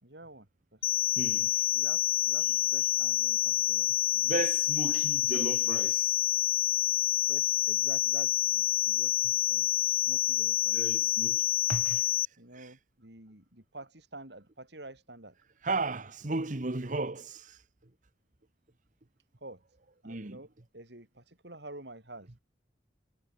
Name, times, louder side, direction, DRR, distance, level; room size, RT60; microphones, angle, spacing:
voice 1, 0.0-1.0 1.7-3.9 7.3-10.8 12.4-15.4 19.4-19.6 20.0-22.3, right 2 dB, 65° right, 6.3 m, -48 dB
sound 1, 0.8-12.3, left 15 dB, 55° left, 0.6 m, -28 dB
voice 2, 1.2-1.5 4.2-6.1 10.7-11.4 11.7-12.0 15.6-17.6 20.0-20.4, right 3 dB, 45° right, 1.2 m, -34 dB
head